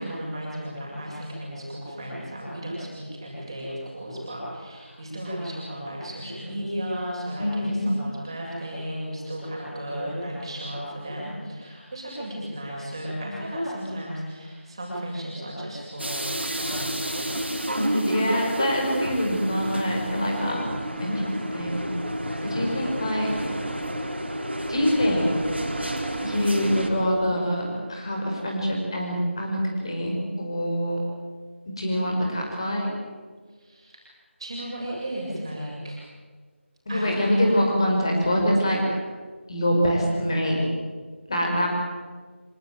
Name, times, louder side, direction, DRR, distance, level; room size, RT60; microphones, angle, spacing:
voice 1, 0.0-17.6 20.3-20.5 20.9-21.3 22.3-23.2 33.6-34.1 34.4-36.0 36.9-37.6, equal, 20° right, -4 dB, 7.5 m, -34 dB
voice 2, 7.4-7.9 17.8-20.6 21.0-21.9 22.4-23.4 24.7-25.4 26.2-29.6 29.8-31.0 31.8-32.9 36.9-38.8 39.5-40.7 41.3-41.7, equal, 25° left, 0 dB, 5.3 m, -25 dB
sound 1, 16.0-26.9, right 1 dB, 55° right, 4.7 m, -30 dB
26.5 x 18.5 x 9.4 m, 1.5 s
figure-of-eight pair, 170°, 7 cm